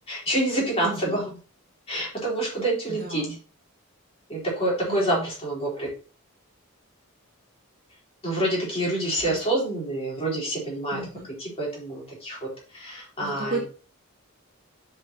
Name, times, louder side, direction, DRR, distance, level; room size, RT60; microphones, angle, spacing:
voice 1, 0.1-1.2 1.9-3.3 4.3-5.9 8.2-11.0 11.4-13.6, right 1 dB, 25° left, -4 dB, 3.9 m, -27 dB
voice 2, 0.8-1.3 2.9-3.4 4.9-5.3 9.3-9.4 10.9-11.3 13.2-13.6, right 2 dB, 45° right, 0 dB, 1.8 m, -34 dB
10.5 x 5.8 x 3.0 m, 0.36 s
head